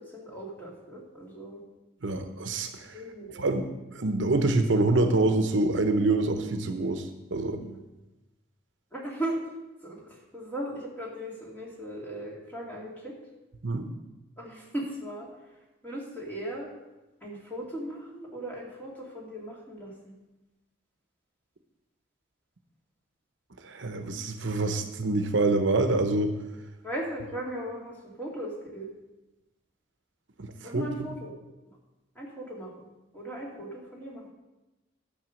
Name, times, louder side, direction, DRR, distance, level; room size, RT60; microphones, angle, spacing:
voice 1, 0.1-1.6 2.9-3.5 7.5-7.8 8.9-9.4 9.8-13.2 14.4-15.3 15.8-16.7 17.2-20.1 26.8-28.9 30.6-31.3 32.2-32.9 33.1-34.3, right 1 dB, 10° left, -3 dB, 2.3 m, -37 dB
voice 2, 2.0-3.0 3.3-3.7 3.9-7.6 13.6-13.9 23.6-26.3 30.4-30.9, right 2 dB, 70° right, 7 dB, 0.8 m, -26 dB
10.5 x 6.8 x 6.3 m, 1.0 s
head